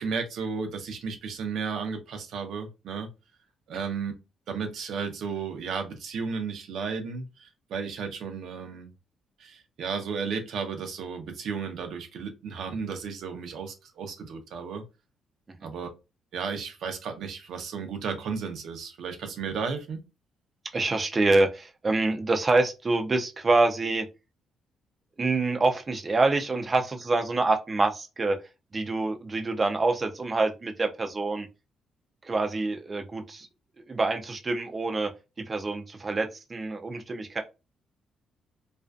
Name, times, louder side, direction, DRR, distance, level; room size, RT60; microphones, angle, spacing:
voice 1, 0.0-3.1 3.7-4.1 4.5-8.9 9.4-14.8 15.6-15.9 16.3-20.0, right 5 dB, 70° right, 0.6 m, -34 dB
voice 2, 20.7-24.1 25.2-28.4 28.7-31.5 32.2-33.5 33.9-35.1 35.4-37.4, right 3 dB, 30° right, 0.5 m, -26 dB
2.5 x 2.3 x 2.3 m
cardioid pair, 90°, 0 cm